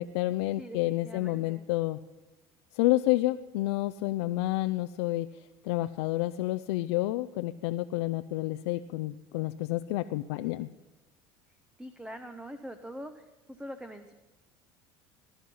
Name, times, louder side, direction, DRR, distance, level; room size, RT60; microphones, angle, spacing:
voice 1, 0.0-2.0 2.7-5.3 5.6-10.7, left 17 dB, 85° left, 10 dB, 0.5 m, -29 dB
voice 2, 0.6-1.6 11.8-13.2 13.5-14.1, equal, 5° right, 9 dB, 0.9 m, -43 dB
19.0 x 11.0 x 5.6 m, 1.1 s
supercardioid pair, 95°, 13 cm